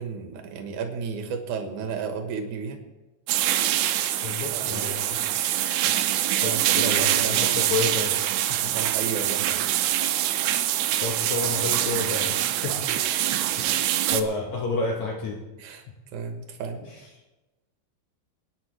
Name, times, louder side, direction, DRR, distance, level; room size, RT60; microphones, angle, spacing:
voice 1, 0.0-2.8 4.5-4.7 6.4-7.6 8.7-9.7 12.9-13.4 15.6-15.8 16.1-16.8, right 5 dB, 65° right, 4 dB, 2.3 m, -33 dB
sound 1, 3.3-14.2, right 12 dB, 80° right, 2.4 m, -24 dB
voice 2, 4.2-5.2 6.4-8.2 8.5-8.7 11.0-12.8 13.6-13.7 14.1-15.4 16.8-17.0, left 3 dB, 70° left, 1 dB, 1.7 m, -30 dB
23.0 x 9.8 x 3.2 m, 1.1 s
omnidirectional pair, 4.7 m